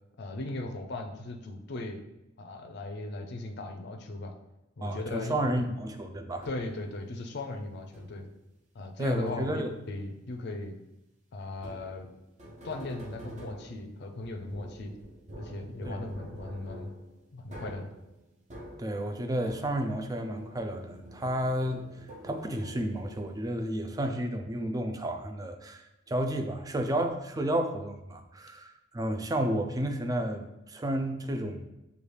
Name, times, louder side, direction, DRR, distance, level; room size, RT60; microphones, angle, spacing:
voice 1, 0.2-2.0 2.4-4.3 4.8-5.7 6.4-8.3 8.7-9.6 9.9-10.8 11.3-12.1 12.6-15.0 15.3-16.9 17.3-17.9, left 2 dB, 55° left, 3 dB, 0.5 m, -38 dB
voice 2, 4.8-6.5 9.0-9.7 15.9-16.0 18.8-21.8 22.2-31.6, right 1 dB, 20° right, 5 dB, 0.4 m, -31 dB
sound 1, 6.4-6.9 7.9-8.4 9.3-9.8 11.6-20.1 20.4-23.5, equal, 35° right, 0.7 m, -48 dB
6.8 x 2.3 x 3.2 m, 0.92 s
head